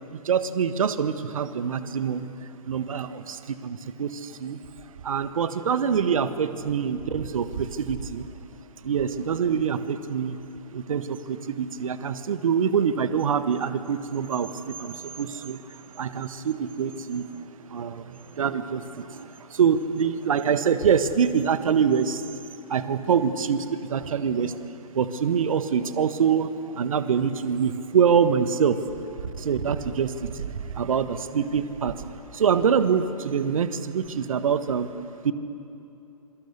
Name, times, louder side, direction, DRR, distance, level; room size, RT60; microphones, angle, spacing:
voice 1, 0.1-2.3 2.7-4.6 5.0-8.3 8.8-10.4 10.7-22.2 22.7-24.6 24.9-28.8 29.2-32.0 32.3-34.9 35.2-35.3, right 7 dB, 60° right, 11 dB, 1.5 m, -25 dB
26.5 x 25.0 x 8.3 m, 2.8 s
figure-of-eight pair, 115°, 19 cm